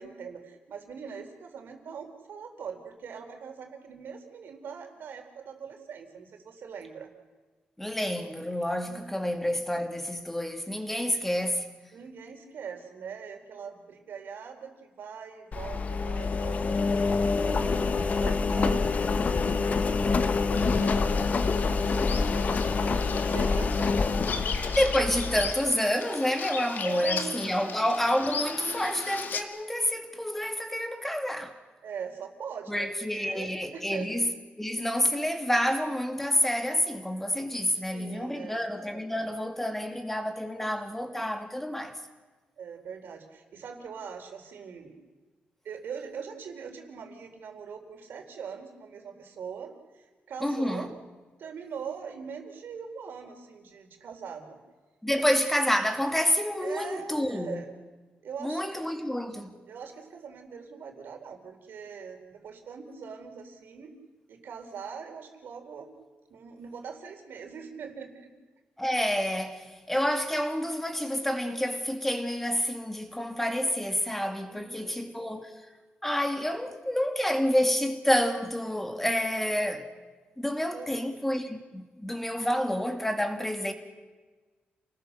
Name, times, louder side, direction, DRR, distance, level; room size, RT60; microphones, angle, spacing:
voice 1, 0.0-7.1 8.9-9.3 11.9-17.7 17.9-24.4 26.5-27.3 27.6-27.7 31.8-32.9 33.1-34.1 37.8-38.6 42.6-45.0 45.6-50.9 51.4-54.6 56.6-57.7 58.2-59.1 59.7-63.9 64.3-65.9 66.3-68.3 74.5-75.0 80.7-81.1, right 6 dB, 70° right, 4.2 m, -42 dB
voice 2, 7.8-11.7 24.7-31.6 32.7-34.3 34.6-42.0 50.4-50.9 55.0-57.6 58.4-59.6 68.8-75.5 76.0-79.9 80.4-83.7, equal, 5° left, 2.3 m, -28 dB
Engine, 15.5-25.5, left 4 dB, 40° left, 1.1 m, -26 dB
Bird vocalization bird call bird song, 20.5-29.4, left 5 dB, 60° left, 2.1 m, -37 dB
29.0 x 20.0 x 6.8 m
wide cardioid pair, 130°, 4 cm